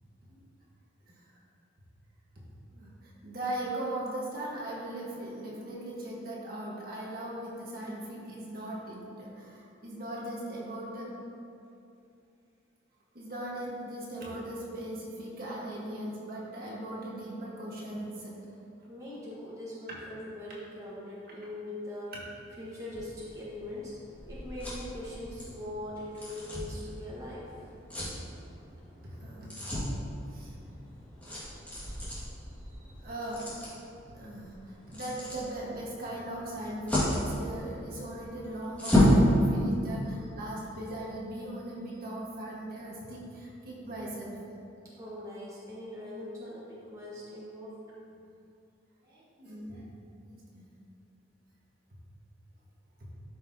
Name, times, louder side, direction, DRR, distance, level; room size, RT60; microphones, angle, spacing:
voice 1, 2.7-11.1 13.1-18.4 29.0-29.5 30.3-30.5 33.0-33.6 34.1-44.4 49.0-49.9 50.3-50.7 53.0-53.1, right 1 dB, 50° right, -5 dB, 1.5 m, -39 dB
voice 2, 18.9-22.1 22.6-23.9 24.3-27.5 45.0-47.7, left 1 dB, 15° right, -8 dB, 1.3 m, -41 dB
sound 1, 22.9-39.2, left 1 dB, 10° left, 1.9 m, -33 dB
12.0 x 5.6 x 2.8 m, 2.6 s
head